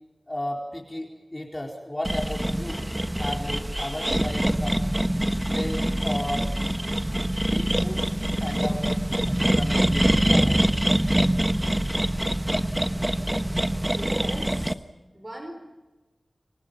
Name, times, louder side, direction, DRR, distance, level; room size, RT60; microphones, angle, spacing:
voice 1, 0.3-2.8 3.2-4.9 5.3-6.5 7.4-8.1 8.4-8.9 9.3-10.6, left 1 dB, 25° left, 0 dB, 4.2 m, -34 dB
sound 1, 2.0-14.7, right 1 dB, 15° right, 1.3 m, -24 dB
voice 2, 13.8-14.7 15.1-15.5, right 1 dB, 35° right, 3 dB, 4.9 m, -39 dB
29.5 x 24.5 x 5.6 m, 1.2 s
wide cardioid pair, 50°, 0 cm